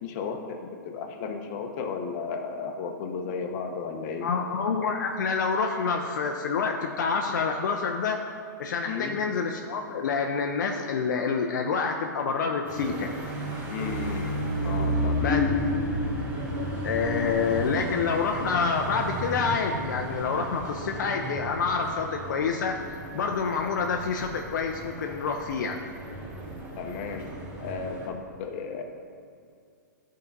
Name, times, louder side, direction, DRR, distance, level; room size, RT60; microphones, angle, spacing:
voice 1, 0.0-4.3 8.8-9.2 13.7-14.3 14.6-15.2 26.8-27.3 27.6-28.8, left 5 dB, 45° left, 4 dB, 1.0 m, -34 dB
voice 2, 4.2-8.2 8.6-13.1 15.2-15.4 16.8-22.8 23.1-25.8, left 5 dB, 65° left, 3 dB, 0.6 m, -27 dB
sound 1, 12.6-28.1, equal, 20° right, 1.6 m, -32 dB
10.5 x 3.8 x 5.3 m, 2.4 s
hypercardioid pair, 130°, 11 cm